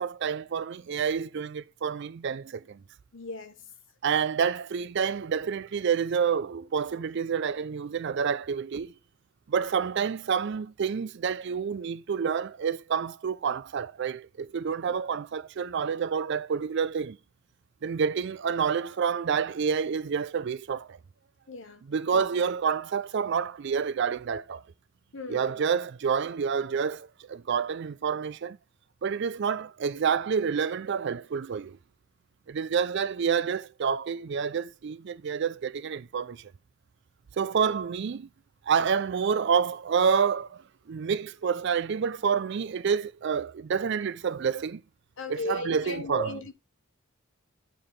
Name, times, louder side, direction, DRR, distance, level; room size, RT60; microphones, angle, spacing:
voice 1, 0.0-2.8 4.0-8.9 9.5-17.2 17.8-21.0 21.9-24.6 25.3-28.6 29.0-31.8 32.5-36.5 37.4-38.3 38.7-40.6 40.9-44.8 45.3-46.3, right 6 dB, 55° right, 0.4 m, -28 dB
voice 2, 3.1-3.5 21.5-21.8 22.1-22.2 25.1-25.6 45.2-46.5, left 1 dB, 60° left, 1.1 m, -36 dB
8.9 x 3.8 x 4.7 m
head